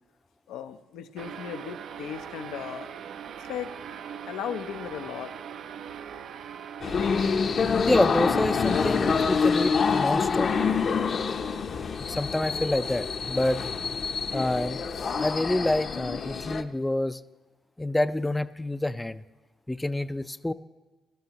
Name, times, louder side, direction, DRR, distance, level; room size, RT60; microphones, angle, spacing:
voice 1, 0.5-2.9 3.4-3.7 4.3-5.4, left 9 dB, 90° left, 8 dB, 0.5 m, -36 dB
sound 1, 1.2-7.8, right 8 dB, 65° right, 0.5 m, -41 dB
sound 2, 6.8-16.6, left 5 dB, 50° left, 0.7 m, -26 dB
voice 2, 7.9-10.5 12.1-13.6 14.3-14.8 15.2-17.2 17.8-19.2 19.7-20.5, left 1 dB, 10° left, 13 dB, 0.3 m, -27 dB
17.5 x 13.0 x 2.9 m, 1.2 s
cardioid pair, 90°, 0 cm